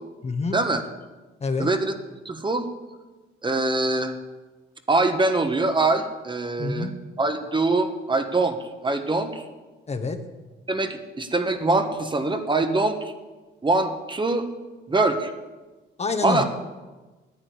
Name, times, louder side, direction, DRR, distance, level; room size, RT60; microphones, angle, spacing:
voice 1, 0.2-0.6 1.4-1.7 6.6-6.9 9.9-10.2 16.0-16.4, left 4 dB, 35° left, 7 dB, 1.4 m, -26 dB
voice 2, 1.6-1.9 2.2-2.7 3.4-4.1 4.9-6.9 7.2-9.4 10.7-13.1 13.6-14.5 14.9-15.3 16.2-16.4, right 2 dB, 25° right, 6 dB, 1.5 m, -23 dB
10.5 x 8.9 x 9.6 m, 1.2 s
cardioid pair, 90°, 20 cm